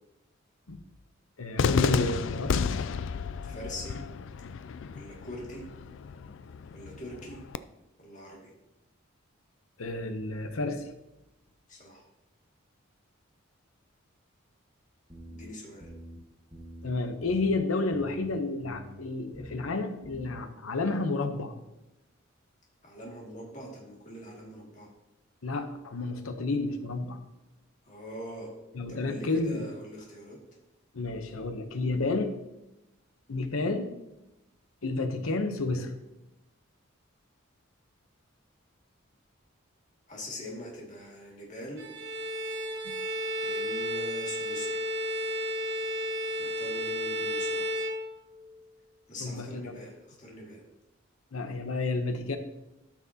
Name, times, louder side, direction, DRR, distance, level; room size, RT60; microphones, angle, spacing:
voice 1, 1.4-2.5 9.8-10.9 16.8-21.5 25.4-27.2 28.7-29.7 30.9-32.4 33.3-33.9 34.8-35.9 42.8-42.9 49.2-49.8 51.3-52.4, left 3 dB, 85° left, 8 dB, 0.9 m, -31 dB
Cheering / Fireworks, 1.6-7.6, left 6 dB, 60° left, 0.3 m, -32 dB
voice 2, 3.4-4.0 4.9-5.6 6.7-7.4 8.0-8.5 11.7-12.1 15.3-15.9 22.8-24.9 27.8-28.5 28.9-30.4 40.1-41.8 43.4-44.8 46.4-47.7 49.1-50.6, equal, 35° left, -3 dB, 2.2 m, -43 dB
sound 1, 15.1-15.5 15.8-16.2 16.5-16.9 17.2-17.6 17.9-18.3 18.6-19.0 19.3-19.7 20.0-20.4, equal, 15° right, 1.3 m, -46 dB
Bowed string instrument, 41.8-48.5, equal, 55° right, 1.0 m, -33 dB
13.0 x 6.0 x 2.9 m, 0.94 s
head